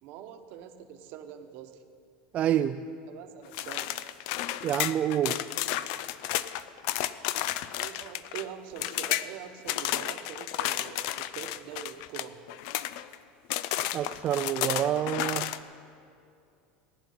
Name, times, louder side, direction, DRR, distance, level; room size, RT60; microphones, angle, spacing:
voice 1, 0.0-1.8 3.1-4.0 7.8-12.5, right 9 dB, 60° right, 8 dB, 1.1 m, -44 dB
voice 2, 2.3-2.8 4.6-5.4 13.9-15.5, right 11 dB, 35° right, 9 dB, 0.3 m, -27 dB
sound 1, 3.5-8.4 8.8-9.3 9.7-13.2 13.5-15.6, left 14 dB, 65° left, 0.5 m, -32 dB
18.5 x 9.6 x 5.6 m, 2.5 s
supercardioid pair, 135°, 4 cm